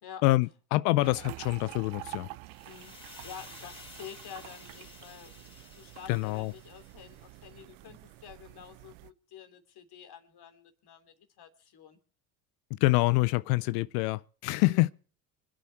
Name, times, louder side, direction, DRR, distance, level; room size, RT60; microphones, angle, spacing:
voice 1, 0.2-2.3 6.1-6.5 12.7-14.9, left 20 dB, 75° left, 0.6 m, -26 dB
sound 1, 1.0-9.1, right 18 dB, 70° right, 0.8 m, -48 dB
sound 2, 2.5-7.5, left 2 dB, 10° left, 3.6 m, -52 dB
voice 2, 2.7-12.0 14.5-14.9, left 8 dB, 50° left, 3.2 m, -49 dB
25.5 x 8.7 x 4.6 m
supercardioid pair, 85°, 49 cm